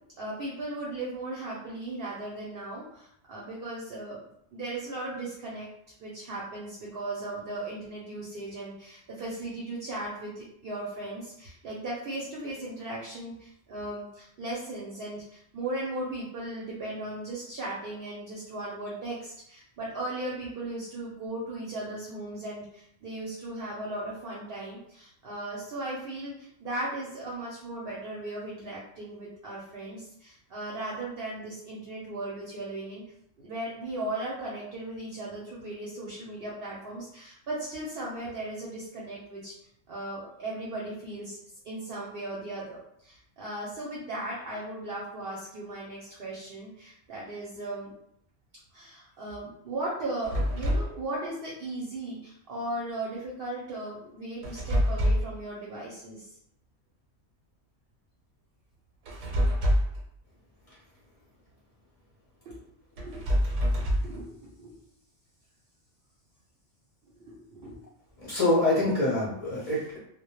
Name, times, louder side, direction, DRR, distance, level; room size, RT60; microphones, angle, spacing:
voice 1, 0.2-4.2 4.5-5.7 6.0-33.0 33.4-39.5 39.9-41.4 41.6-47.9 48.7-56.3 62.5-62.7 63.0-63.3 63.8-64.7 67.0-67.8, right 2 dB, 60° right, -5 dB, 0.7 m, -37 dB
sound 1, 50.2-51.0 54.4-55.4 59.1-60.0 63.0-64.2, equal, 75° right, 0.9 m, -26 dB
voice 2, 68.3-70.0, left 1 dB, 40° left, -7 dB, 0.5 m, -25 dB
2.1 x 2.0 x 2.9 m, 0.72 s
omnidirectional pair, 1.3 m